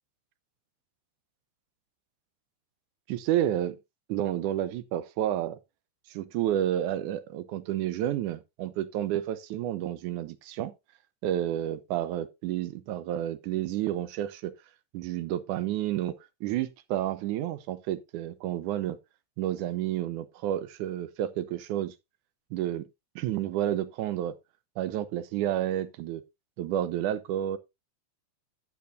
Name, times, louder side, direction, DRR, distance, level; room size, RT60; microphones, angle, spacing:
voice 1, 3.1-3.8 4.1-5.6 6.1-10.7 11.2-14.5 14.9-16.1 16.4-19.0 19.4-21.9 22.5-22.9 23.2-24.4 24.8-26.2 26.6-27.6, right 12 dB, 85° right, 2.3 m, -30 dB
12.5 x 8.7 x 2.5 m
omnidirectional pair, 3.5 m